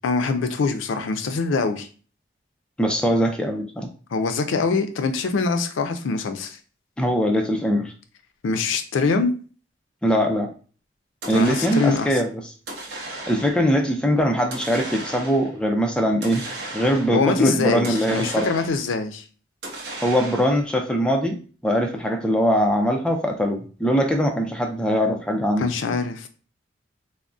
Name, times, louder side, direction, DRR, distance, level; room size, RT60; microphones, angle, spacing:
voice 1, 0.0-1.9 4.1-6.6 8.4-9.3 11.3-12.1 17.1-19.2 25.6-26.3, left 4 dB, 85° left, 8 dB, 0.4 m, -23 dB
voice 2, 2.8-3.9 7.0-7.9 10.0-10.5 11.3-12.3 13.3-16.4 16.7-18.5 20.0-21.4 21.6-25.6, equal, 5° left, 2 dB, 0.3 m, -21 dB
sound 1, 11.2-12.2 12.7-13.7 14.5-15.6 16.2-17.3 17.8-18.9 19.6-20.7, right 2 dB, 65° right, 0.7 m, -35 dB
3.4 x 2.0 x 2.5 m, 0.38 s
head